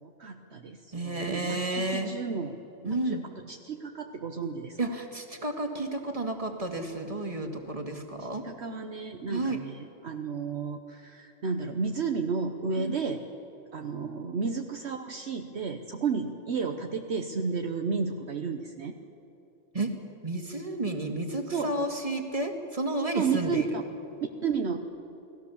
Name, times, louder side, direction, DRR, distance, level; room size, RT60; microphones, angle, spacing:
voice 1, 0.0-2.5 2.9-3.2 3.5-4.8 8.2-13.2 13.7-18.9 21.5-21.7 23.1-23.8 24.4-24.8, right 5 dB, 65° right, 4 dB, 1.3 m, -32 dB
voice 2, 0.9-2.1 2.8-3.2 4.8-8.4 9.3-9.6 12.8-13.0 19.7-19.9 20.2-23.7, right 2 dB, 30° right, 4 dB, 2.2 m, -31 dB
29.5 x 18.5 x 7.2 m, 3.0 s
omnidirectional pair, 1.2 m